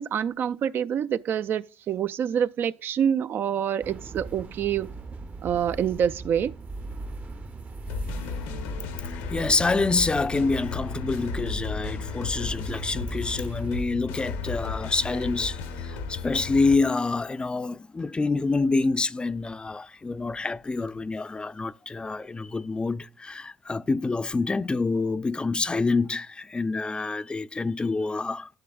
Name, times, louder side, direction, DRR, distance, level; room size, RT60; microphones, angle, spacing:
voice 1, 0.0-4.9 5.4-6.5, right 8 dB, 60° right, 0.4 m, -26 dB
sound 1, 3.8-13.8, right 3 dB, 40° right, 0.8 m, -39 dB
sound 2, 7.9-16.8, left 5 dB, 85° left, 0.9 m, -34 dB
voice 2, 9.1-28.6, left 3 dB, 25° left, 0.4 m, -27 dB
11.5 x 6.8 x 2.3 m
hypercardioid pair, 60°, 4 cm